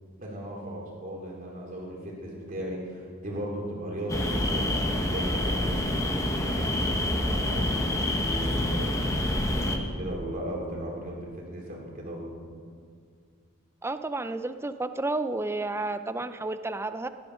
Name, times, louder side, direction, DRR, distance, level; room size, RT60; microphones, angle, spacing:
voice 1, 0.2-6.8 7.4-12.4, right 1 dB, 40° right, -2 dB, 3.1 m, -37 dB
sound 1, 4.1-9.8, left 1 dB, 15° left, 1.0 m, -27 dB
voice 2, 13.8-17.1, right 2 dB, 10° right, 10 dB, 0.4 m, -31 dB
14.5 x 11.0 x 6.3 m, 2.1 s
head